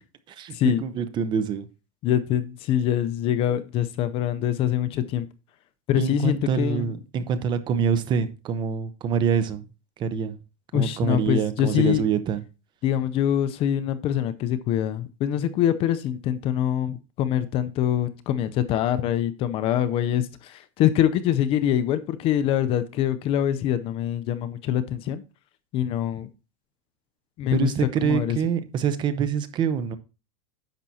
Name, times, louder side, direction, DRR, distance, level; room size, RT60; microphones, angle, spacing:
voice 1, 0.8-1.7 6.0-9.6 10.0-10.4 10.7-12.4 27.5-30.0, right 7 dB, 25° right, 0.8 m, -25 dB
voice 2, 2.0-5.3 5.9-6.9 10.7-12.0 12.8-25.2 25.7-26.3 27.4-27.7 28.0-28.4, left 10 dB, 30° left, 0.6 m, -24 dB
10.5 x 7.4 x 2.8 m
supercardioid pair, 155°, 18 cm